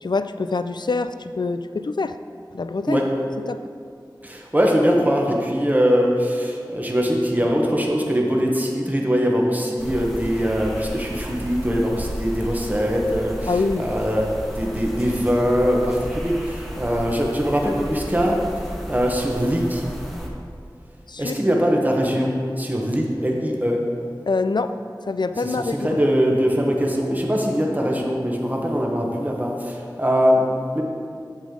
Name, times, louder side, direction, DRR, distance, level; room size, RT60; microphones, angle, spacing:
voice 1, 0.0-2.2 2.5-3.0 3.5-3.6 13.5-13.9 21.1-21.4 24.3-24.7 25.1-26.0, left 3 dB, 65° left, 11 dB, 0.3 m, -25 dB
voice 2, 4.2-14.3 14.5-19.9 21.2-23.9 25.4-30.8, equal, 20° right, -1 dB, 1.1 m, -22 dB
sound 1, 9.8-20.3, equal, ahead, 1.4 m, -33 dB
8.4 x 7.2 x 3.8 m, 2.3 s
wide cardioid pair, 40°, 8 cm